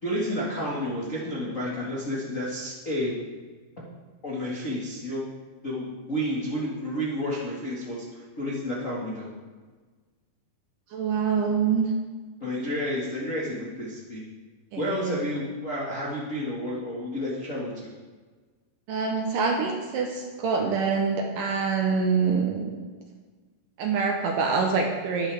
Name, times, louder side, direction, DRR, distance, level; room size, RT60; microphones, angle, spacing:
voice 1, 0.0-3.1 4.2-5.3 5.6-9.3 12.4-14.2 14.8-17.9, equal, 90° left, -6 dB, 0.7 m, -31 dB
voice 2, 10.9-11.9 14.7-15.2 18.9-22.8 23.8-25.3, right 5 dB, 75° right, 2 dB, 2.1 m, -25 dB
12.5 x 11.0 x 3.4 m, 1.4 s
omnidirectional pair, 4.7 m